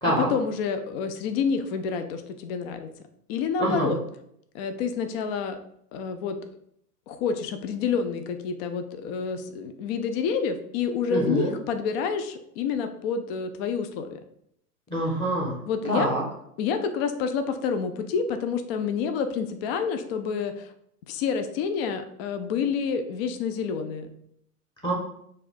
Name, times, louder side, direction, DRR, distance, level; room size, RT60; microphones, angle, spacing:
voice 1, 0.0-2.9 3.3-4.0 4.5-5.6 5.9-6.4 7.1-14.2 15.7-16.1 16.6-20.7 21.1-24.1, left 6 dB, 40° left, 8 dB, 0.5 m, -28 dB
voice 2, 3.6-3.9 11.1-11.5 14.9-15.6 15.9-16.2 24.8-24.9, right 1 dB, 10° left, -2 dB, 1.0 m, -25 dB
4.2 x 2.4 x 4.2 m, 0.72 s
figure-of-eight pair, 95°, 47 cm